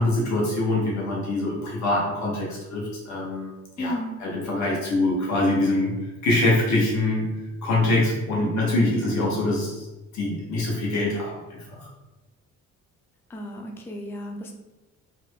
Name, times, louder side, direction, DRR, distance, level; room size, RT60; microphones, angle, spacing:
voice 1, 0.0-3.5 3.8-5.9 6.2-7.3 7.6-9.9 10.1-11.9, left 2 dB, 70° left, -4 dB, 0.8 m, -24 dB
voice 2, 3.8-4.1 8.4-8.6 8.9-9.1 13.3-14.5, equal, 10° left, 1 dB, 0.3 m, -33 dB
2.5 x 2.1 x 3.2 m, 1.1 s
cardioid pair, 90°, 30 cm